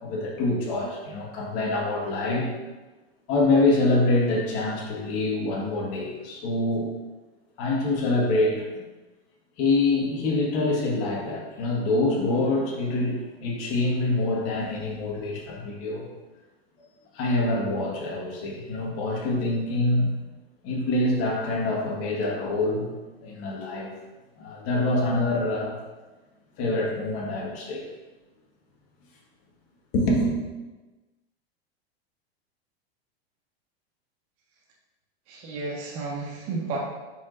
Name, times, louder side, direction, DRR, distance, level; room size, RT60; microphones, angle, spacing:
voice 1, 0.0-2.5 3.3-6.9 7.6-8.6 9.6-16.1 17.1-20.2 20.6-22.9 23.2-23.9 24.4-25.8 26.6-27.9 29.9-30.3, left 2 dB, 50° left, -2 dB, 1.8 m, -25 dB
voice 2, 35.3-36.8, right 3 dB, 45° right, -2 dB, 1.5 m, -32 dB
6.9 x 5.1 x 2.7 m, 1.2 s
hypercardioid pair, 110°, 31 cm